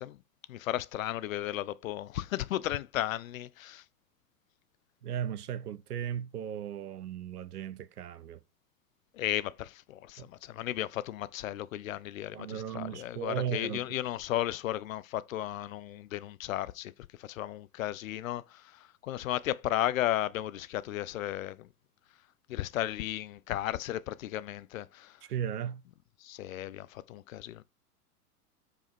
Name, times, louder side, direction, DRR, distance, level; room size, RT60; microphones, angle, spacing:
voice 1, 0.5-3.8 9.1-16.9 17.2-21.7 22.5-25.2 26.2-27.6, left 13 dB, 60° left, 0.5 m, -34 dB
voice 2, 5.0-8.4 10.2-10.3 12.3-13.9 25.2-25.8, right 9 dB, 75° right, 0.7 m, -36 dB
5.1 x 4.8 x 4.3 m
figure-of-eight pair, 90°, 47 cm